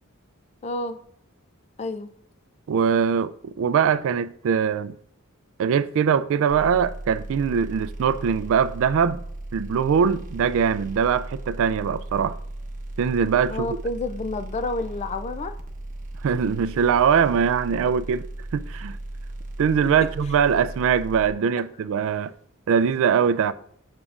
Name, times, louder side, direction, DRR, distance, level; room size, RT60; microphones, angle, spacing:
voice 1, 0.6-1.0 1.8-2.1 13.5-15.6, left 2 dB, 30° left, 0.4 m, -29 dB
voice 2, 2.7-4.9 5.6-9.2 9.5-12.4 13.0-13.8 16.2-18.2 18.5-19.0 19.6-22.3 22.7-23.5, right 7 dB, 65° right, 0.3 m, -22 dB
sound 1, 6.5-21.3, right 1 dB, 40° right, 0.8 m, -36 dB
7.0 x 6.4 x 2.4 m
head